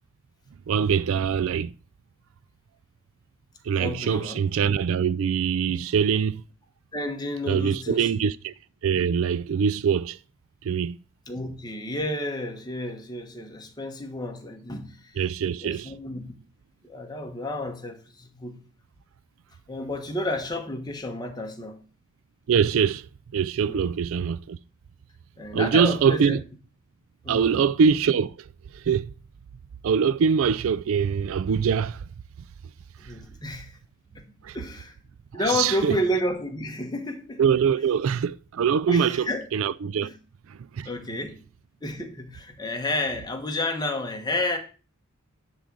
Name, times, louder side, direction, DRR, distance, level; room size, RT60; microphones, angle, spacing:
voice 1, 0.7-1.7 3.6-6.4 7.5-8.5 8.8-10.2 10.6-11.0 15.2-15.9 22.5-23.1 23.3-24.6 25.5-26.4 27.3-28.3 28.7-29.1 29.8-32.0 34.4-34.6 35.5-36.0 37.4-39.3 39.5-40.1 40.8-40.9, right 7 dB, 65° right, 0.3 m, -23 dB
voice 2, 3.7-4.4 5.7-5.8 6.9-8.3 11.3-15.2 15.6-16.3 16.8-18.6 19.7-21.8 23.7-24.0 25.4-26.4 27.2-27.6 33.0-33.8 34.1-35.0 35.3-37.4 38.9-39.4 40.0-40.2 40.8-41.4 41.8-44.6, left 1 dB, 20° left, 1.3 m, -31 dB
10.5 x 3.8 x 6.1 m
head